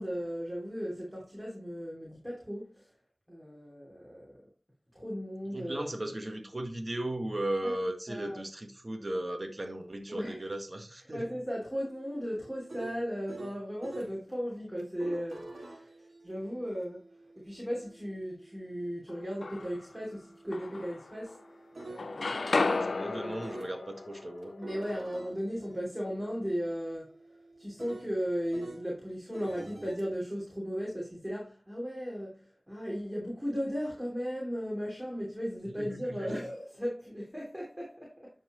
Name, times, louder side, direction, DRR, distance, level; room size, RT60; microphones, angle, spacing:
voice 1, 0.0-2.9 3.3-4.4 4.9-5.9 7.6-7.7 8.1-8.4 10.1-10.4 11.1-16.0 16.2-17.0 17.4-21.4 21.9-22.5 23.0-23.4 24.6-27.2 27.6-38.3, equal, 10° right, 3.1 m, -36 dB
voice 2, 5.5-11.3 22.7-24.5 35.8-36.4, right 1 dB, 45° right, 1.7 m, -36 dB
sound 1, 11.8-14.1 14.8-22.9 23.4-23.7 24.4-28.9 29.3-30.0, right 2 dB, 75° right, 2.3 m, -48 dB
sound 2, 19.1-20.0 20.5-21.5 21.8-25.8, left 3 dB, 85° left, 0.3 m, -34 dB
13.0 x 4.5 x 3.1 m
wide cardioid pair, 45°, 0 cm